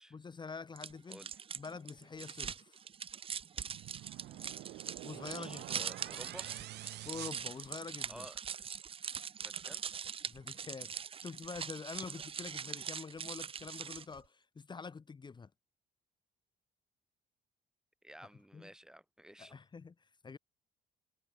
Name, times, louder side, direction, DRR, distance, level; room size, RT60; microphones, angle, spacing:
voice 1, 0.1-1.3 1.5-2.8 5.0-5.8 7.0-8.3 10.3-15.5 18.5-18.7 19.4-20.4, left 5 dB, 25° left, 1.0 m, -46 dB
sound 1, 0.8-14.2, right 7 dB, 35° right, 0.5 m, -42 dB
voice 2, 1.1-1.4 5.2-6.5 8.1-8.4 9.4-9.8 18.0-19.6, right 1 dB, 5° right, 3.8 m, -53 dB
sound 2, 3.7-8.3, right 16 dB, 80° right, 0.8 m, -48 dB
cardioid pair, 110°, 17 cm